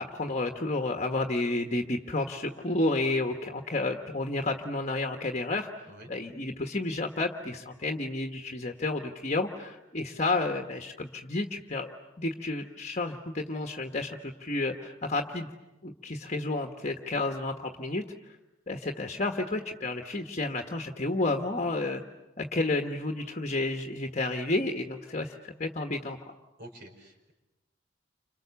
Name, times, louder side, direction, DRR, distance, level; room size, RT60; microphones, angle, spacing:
voice 1, 0.0-15.5 15.8-18.0 18.7-22.0 22.4-26.3, left 2 dB, 40° left, 4 dB, 1.4 m, -31 dB
voice 2, 26.6-27.3, right 1 dB, 60° right, 5 dB, 5.3 m, -48 dB
30.0 x 26.5 x 7.1 m, 0.99 s
head